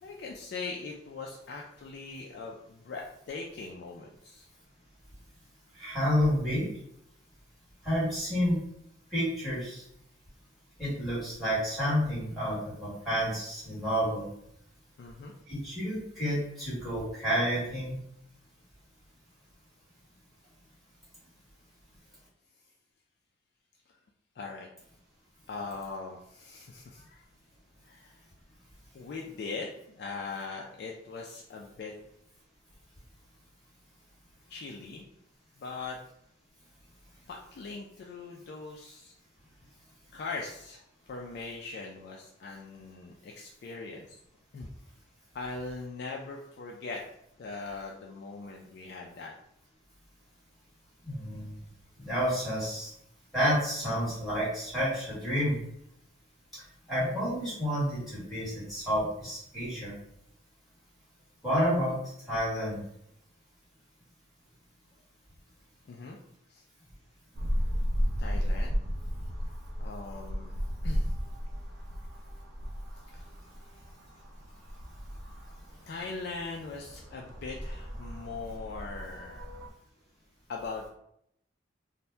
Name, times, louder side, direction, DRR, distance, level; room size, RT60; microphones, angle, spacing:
voice 1, 0.0-4.5 15.0-15.3 23.9-24.0 24.4-24.7 25.5-27.2 27.8-28.2 28.9-31.9 34.5-35.1 35.6-36.0 37.3-39.2 40.1-44.2 44.5-44.7 45.3-47.0 47.4-49.3 65.9-66.2 66.5-66.7 68.2-68.8 69.8-70.5 70.8-71.1 73.1-73.2 75.9-79.5 80.5-80.9, left 4 dB, 55° left, -1 dB, 0.3 m, -40 dB
voice 2, 5.8-6.7 7.8-8.6 9.1-9.8 10.8-14.3 15.5-18.0 51.0-51.5 52.0-52.9 53.3-55.6 56.5-56.6 56.9-59.9 61.4-61.9 62.3-62.8, equal, ahead, -9 dB, 1.4 m, -29 dB
sound 1, 67.3-79.7, equal, 60° right, 0.5 m, -35 dB
2.7 x 2.1 x 3.2 m, 0.75 s
head